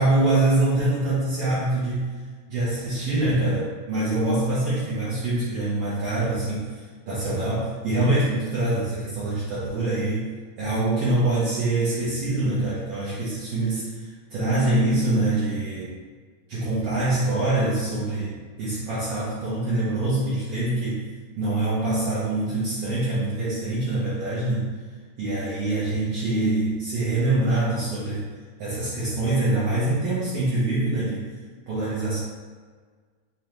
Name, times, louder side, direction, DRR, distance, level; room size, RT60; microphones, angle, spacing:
voice 1, 0.0-2.1 2.5-6.7 7.1-10.3 10.6-15.9 16.5-21.0 21.4-24.6 25.2-28.2 28.6-31.2 31.7-32.2, right 2 dB, 70° right, -10 dB, 1.6 m, -24 dB
5.0 x 2.3 x 3.0 m, 1.5 s
omnidirectional pair, 3.5 m